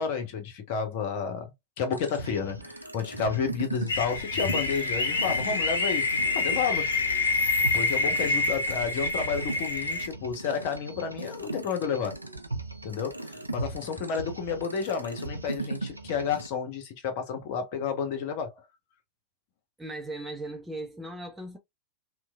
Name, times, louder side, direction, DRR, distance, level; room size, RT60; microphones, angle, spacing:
voice 1, 0.0-1.5 1.8-6.0 6.3-6.9 7.6-12.1 12.8-18.6, left 6 dB, 50° left, 0.9 m, -31 dB
sound 1, 1.9-16.5, right 2 dB, 85° right, 0.4 m, -38 dB
sound 2, 3.9-10.1, left 3 dB, 75° left, 0.5 m, -27 dB
voice 2, 19.8-21.6, right 2 dB, 10° right, 0.7 m, -38 dB
3.0 x 2.2 x 2.3 m
figure-of-eight pair, 90°, 0 cm